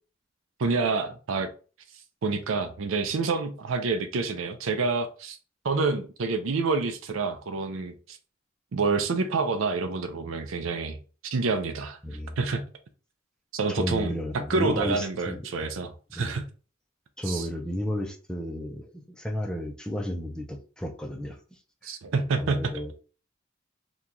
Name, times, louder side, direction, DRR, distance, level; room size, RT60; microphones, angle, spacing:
voice 1, 0.6-1.5 2.2-5.4 5.6-8.2 8.7-11.0 11.2-12.0 12.4-12.6 13.5-16.5 17.3-17.5 21.8-22.6, right 4 dB, 80° right, 0.5 m, -28 dB
voice 2, 12.0-12.4 13.7-15.5 16.2-16.3 17.2-21.4 21.8-21.9 22.4-22.9, equal, 5° left, 0.5 m, -32 dB
3.0 x 2.3 x 3.8 m
head